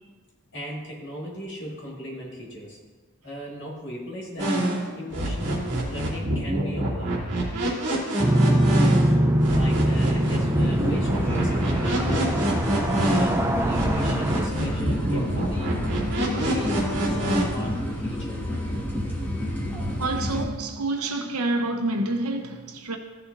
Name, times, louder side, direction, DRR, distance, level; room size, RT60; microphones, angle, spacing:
voice 1, 0.5-2.8 3.2-4.6 4.9-7.2 9.5-12.6 12.9-15.8 16.2-18.7, equal, 55° left, 2.2 m, -37 dB
sound 1, 4.4-9.1 9.4-13.4 13.7-17.4, right 1 dB, 55° right, 2.7 m, -26 dB
sound 2, 8.2-14.5, right 1 dB, 10° right, 0.4 m, -23 dB
sound 3, 10.4-20.4, equal, 10° left, 1.3 m, -30 dB
voice 2, 20.0-23.0, right 2 dB, 85° right, 1.0 m, -28 dB
14.5 x 6.8 x 2.7 m
head